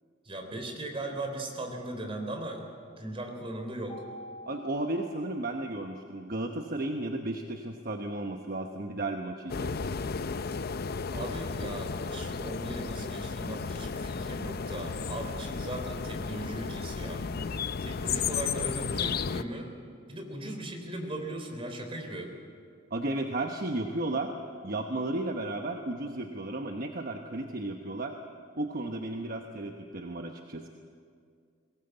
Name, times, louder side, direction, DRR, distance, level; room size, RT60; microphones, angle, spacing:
voice 1, 0.2-4.0 11.1-17.3 17.8-19.7 20.1-22.3, right 1 dB, 30° right, 3 dB, 3.6 m, -38 dB
Mallet percussion, 3.9-6.1, left 1 dB, 35° left, 3.1 m, -48 dB
voice 2, 4.5-9.7 22.9-24.3 24.6-28.2 28.6-30.7, right 2 dB, 50° right, 4 dB, 1.1 m, -34 dB
sound 1, 9.5-19.4, left 5 dB, 55° left, 0.6 m, -33 dB
22.0 x 18.0 x 8.1 m, 2.2 s
head